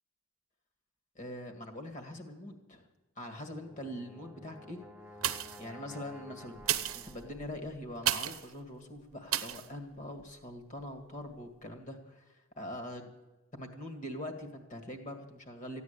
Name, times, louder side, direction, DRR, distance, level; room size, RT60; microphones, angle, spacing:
voice 1, 1.2-2.8 3.2-4.8 5.1-5.2 5.6-6.6 6.9-13.1 13.5-15.8, left 1 dB, 35° left, 5 dB, 2.1 m, -43 dB
Brass instrument, 3.4-7.6, left 1 dB, 5° right, 0.8 m, -52 dB
sound 1, 5.2-5.7 6.5-8.5 9.3-9.7 10.2-10.3, right 12 dB, 70° right, 0.8 m, -33 dB
15.0 x 9.8 x 8.4 m, 1.1 s
head